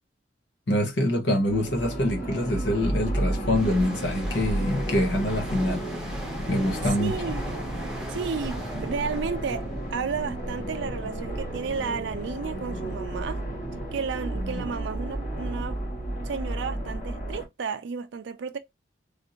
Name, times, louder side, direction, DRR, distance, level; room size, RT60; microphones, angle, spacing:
voice 1, 0.7-5.9 6.5-7.1 14.5-14.6, left 1 dB, 70° left, 0.9 m, -25 dB
sound 1, 1.5-17.5, right 1 dB, 40° left, 1.8 m, -32 dB
sound 2, 3.5-11.0 11.3-11.6, equal, 5° right, 0.8 m, -41 dB
voice 2, 7.0-7.5 8.1-13.4 13.9-15.8 16.2-18.6, right 5 dB, 75° right, 0.4 m, -32 dB
3.4 x 2.5 x 2.8 m
head